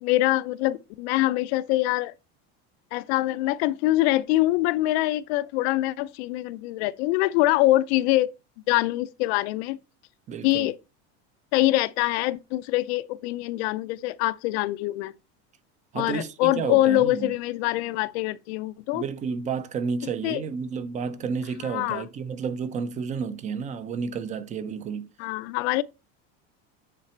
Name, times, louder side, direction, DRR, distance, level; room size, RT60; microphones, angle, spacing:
voice 1, 0.0-2.1 2.9-8.3 8.7-9.8 10.4-10.8 11.5-15.1 15.9-19.0 20.2-20.4 21.6-22.1 25.2-25.8, left 16 dB, 75° left, 0.6 m, -24 dB
voice 2, 10.3-10.7 15.9-17.3 18.9-25.1, right 6 dB, 25° right, 0.5 m, -31 dB
9.2 x 4.1 x 4.3 m
cardioid pair, 160°, 33 cm